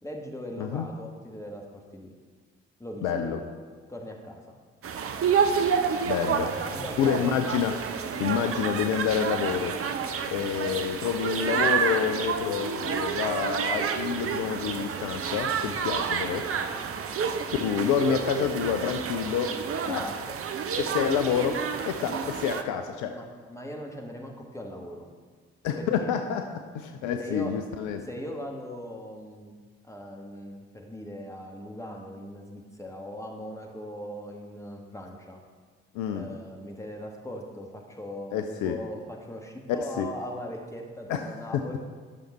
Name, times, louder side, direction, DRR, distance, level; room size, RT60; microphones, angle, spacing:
voice 1, 0.0-1.6 1.9-2.1 2.8-3.4 3.9-4.4 6.7-7.3 16.7-17.0 19.8-20.4 22.1-22.2 23.0-25.1 25.8-26.1 27.2-27.6 28.1-29.6 29.8-35.4 36.1-41.8, equal, 10° left, 0 dB, 1.7 m, -39 dB
voice 2, 3.0-3.4 6.0-6.5 7.0-7.8 8.2-9.8 10.3-16.5 17.6-19.5 19.9-20.0 20.8-23.2 25.6-28.1 35.9-36.4 38.3-38.8 40.0-40.1 41.1-41.6, left 8 dB, 65° left, 6 dB, 0.6 m, -28 dB
sound 1, 4.8-22.6, right 6 dB, 40° right, 0.7 m, -29 dB
9.5 x 6.4 x 4.4 m, 1.5 s
figure-of-eight pair, 40°, 34 cm